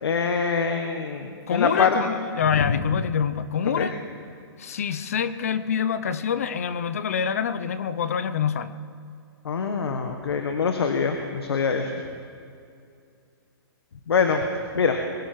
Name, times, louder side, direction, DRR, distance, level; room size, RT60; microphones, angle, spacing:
voice 1, 0.0-1.9 2.6-2.7 3.8-3.9 9.4-11.9 14.1-14.4 14.7-15.0, left 5 dB, 75° left, 5 dB, 1.5 m, -24 dB
voice 2, 1.5-4.0 4.6-8.7, left 7 dB, 35° left, 14 dB, 0.5 m, -26 dB
22.0 x 10.0 x 6.1 m, 2.4 s
hypercardioid pair, 180°, 13 cm